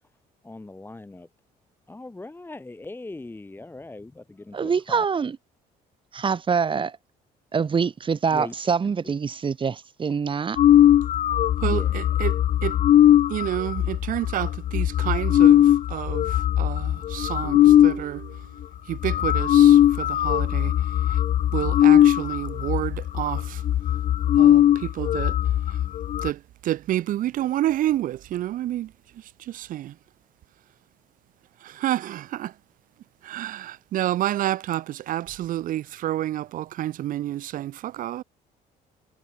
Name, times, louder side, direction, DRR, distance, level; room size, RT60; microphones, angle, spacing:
voice 1, 0.4-1.3 1.9-5.1 8.3-8.5 8.8-9.1 11.6-12.0, left 2 dB, 10° left, 1.9 m, -39 dB
voice 2, 4.5-5.4 6.1-7.0 7.5-10.6, right 6 dB, 30° right, 1.2 m, -25 dB
sound 1, 10.6-18.0 18.6-18.7 18.9-26.3, left 11 dB, 45° left, 0.5 m, -19 dB
voice 3, 11.6-12.4 12.6-12.8 13.3-18.5 18.9-20.8 21.1-21.2 21.5-23.6 24.4-25.4 25.7-25.8 26.2-30.0 31.6-32.5 33.2-38.2, right 13 dB, 55° right, 0.4 m, -29 dB
cardioid pair, 110°, 17 cm